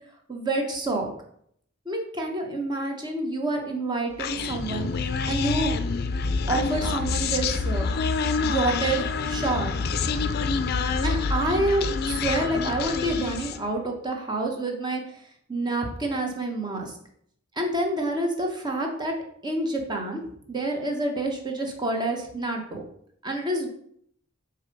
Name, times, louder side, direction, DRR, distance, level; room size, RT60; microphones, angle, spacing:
voice 1, 0.3-1.1 1.9-4.9 5.3-5.7 6.5-7.9 8.4-9.7 11.0-15.0 15.5-16.9 17.6-19.1 19.4-20.2 20.5-22.8 23.2-23.7, right 2 dB, 20° right, 2 dB, 1.0 m, -28 dB
Human voice, 4.2-13.7, left 4 dB, 50° left, 0.4 m, -27 dB
6.9 x 2.9 x 5.2 m, 0.68 s
head